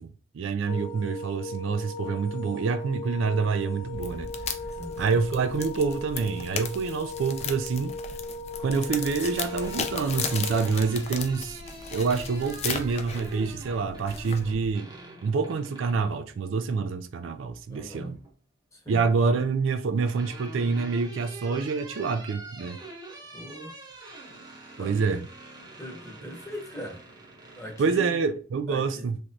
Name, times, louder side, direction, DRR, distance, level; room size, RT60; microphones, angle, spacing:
voice 1, 0.0-4.3 5.0-7.9 8.6-11.6 11.9-14.9 15.2-18.2 18.9-22.8 24.8-25.3 27.8-29.2, right 5 dB, 70° right, 0.3 m, -27 dB
sound 1, 0.7-10.7, left 2 dB, 90° left, 0.8 m, -38 dB
sound 2, 3.9-14.7, left 6 dB, 30° left, 0.3 m, -36 dB
voice 2, 4.7-5.2 17.7-18.2 18.7-19.1 23.3-23.8 24.8-25.3 25.8-27.1 27.6-28.2 28.7-29.2, equal, 15° left, 0.9 m, -41 dB
sound 3, 9.2-16.2 17.6-18.3 19.6-28.1, right 2 dB, 20° right, 0.7 m, -45 dB
3.5 x 3.0 x 2.6 m
head